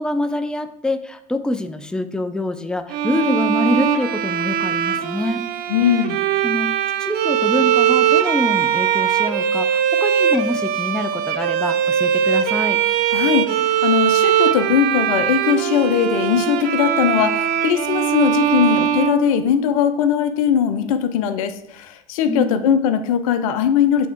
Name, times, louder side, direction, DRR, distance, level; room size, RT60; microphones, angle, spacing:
voice 1, 0.0-5.5 6.4-6.7 7.0-12.8 22.3-22.7, left 1 dB, 5° left, 9 dB, 0.5 m, -25 dB
Bowed string instrument, 2.9-19.9, right 9 dB, 60° right, 0.7 m, -20 dB
voice 2, 5.7-6.2 13.1-24.1, left 8 dB, 75° left, 10 dB, 0.6 m, -19 dB
7.1 x 3.5 x 4.5 m, 0.75 s
hypercardioid pair, 75°, 18 cm